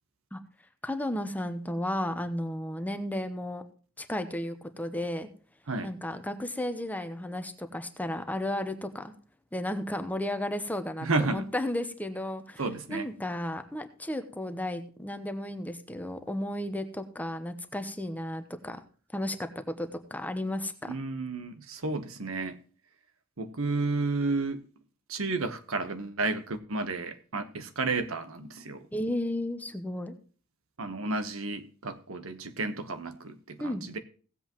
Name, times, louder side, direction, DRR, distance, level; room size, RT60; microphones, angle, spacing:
voice 1, 0.8-3.6 4.0-5.3 5.8-9.1 9.5-12.6 12.9-18.8 19.1-20.9 28.9-30.1 33.6-33.8, left 1 dB, 10° left, 0.9 m, -33 dB
voice 2, 11.0-11.5 12.6-13.1 20.9-22.6 23.4-24.6 25.1-28.8 30.8-34.0, right 3 dB, 75° right, 1.2 m, -32 dB
17.5 x 7.9 x 3.0 m
head